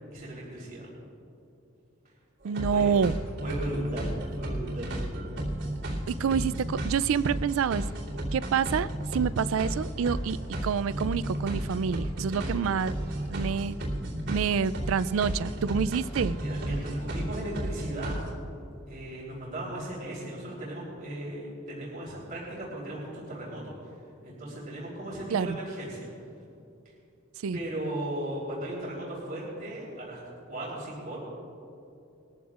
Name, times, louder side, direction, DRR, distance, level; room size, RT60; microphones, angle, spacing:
voice 1, 0.1-0.9 2.7-2.9 3.4-4.9 16.4-18.2 18.9-23.7 24.2-26.1 27.5-30.2 30.5-31.2, right 1 dB, 45° right, -6 dB, 3.6 m, -36 dB
sound 1, 2.4-18.3, right 1 dB, 60° right, 2.8 m, -33 dB
voice 2, 2.4-3.2 6.1-7.8 8.3-12.9 13.3-13.8 14.3-16.4 25.3-25.6 27.4-27.6, right 6 dB, 80° right, 17 dB, 0.4 m, -27 dB
21.0 x 14.0 x 2.4 m, 2.6 s
head